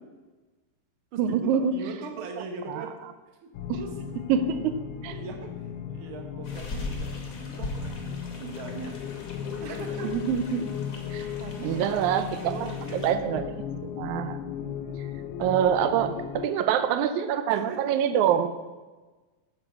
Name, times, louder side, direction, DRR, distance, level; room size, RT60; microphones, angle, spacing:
voice 1, 1.2-1.7 2.7-2.9 3.7-3.8 4.3-4.8 5.0-5.1 10.0-10.6 11.1-11.3 11.6-12.2 12.9-13.5 13.8-14.4 15.4-18.5, right 9 dB, 75° right, 10 dB, 1.8 m, -25 dB
voice 2, 1.7-2.9 3.7-3.9 5.1-9.0 9.6-10.2 11.4-13.4 14.7-15.1 17.5-17.8, right 4 dB, 55° right, 4 dB, 1.6 m, -40 dB
sound 1, 3.5-16.5, left 8 dB, 85° left, 1.7 m, -36 dB
sound 2, 6.4-13.1, left 2 dB, 70° left, 0.8 m, -40 dB
9.6 x 7.8 x 5.8 m, 1.2 s
omnidirectional pair, 4.1 m